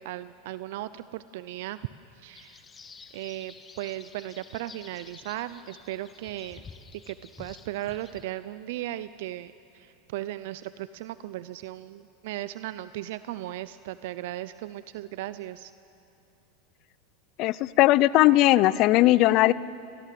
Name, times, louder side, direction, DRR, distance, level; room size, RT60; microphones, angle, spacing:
voice 1, 0.0-1.8 2.2-2.6 3.1-6.6 6.9-15.7, right 15 dB, 70° right, 15 dB, 0.5 m, -37 dB
sound 1, 2.3-8.2, left 5 dB, 25° left, 1.5 m, -50 dB
voice 2, 17.4-19.5, left 16 dB, 50° left, 19 dB, 0.6 m, -19 dB
27.0 x 18.0 x 7.7 m, 2.7 s
hypercardioid pair, 100°, 0 cm